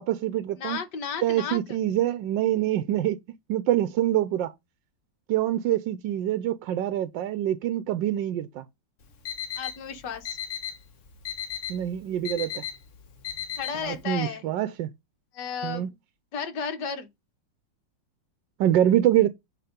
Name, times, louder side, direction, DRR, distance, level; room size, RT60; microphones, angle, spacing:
voice 1, 0.0-0.8 1.2-3.2 3.5-4.5 5.3-8.7 11.7-12.6 13.7-14.9 15.6-15.9 18.6-19.3, right 12 dB, 85° right, 1.3 m, -25 dB
voice 2, 0.6-1.8 9.6-10.4 13.6-14.5 15.3-16.0 16.3-17.1, left 7 dB, 70° left, 1.7 m, -33 dB
Alarm, 9.0-14.0, left 9 dB, 50° left, 1.3 m, -36 dB
8.3 x 3.5 x 5.1 m
omnidirectional pair, 2.0 m